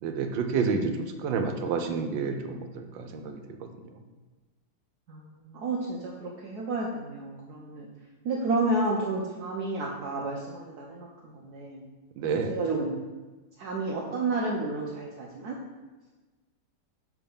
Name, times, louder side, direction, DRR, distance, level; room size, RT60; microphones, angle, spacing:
voice 1, 0.0-3.7 12.2-12.5, right 5 dB, 90° right, 6 dB, 1.4 m, -29 dB
voice 2, 5.1-7.9 8.2-11.8 12.5-12.9 13.6-15.6, right 2 dB, 65° right, -3 dB, 1.1 m, -31 dB
5.9 x 3.5 x 5.5 m, 1.2 s
omnidirectional pair, 2.0 m